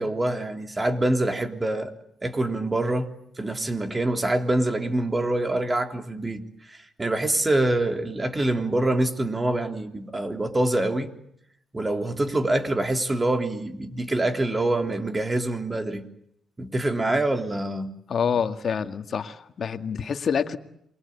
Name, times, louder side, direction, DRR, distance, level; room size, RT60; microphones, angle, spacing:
voice 1, 0.0-1.9 2.2-3.1 3.4-11.1 11.7-16.1 16.6-17.9, right 1 dB, 20° right, 6 dB, 3.5 m, -25 dB
voice 2, 18.1-20.6, left 7 dB, 50° left, 8 dB, 2.1 m, -27 dB
28.5 x 24.0 x 8.6 m, 0.75 s
cardioid pair, 90°, 0 cm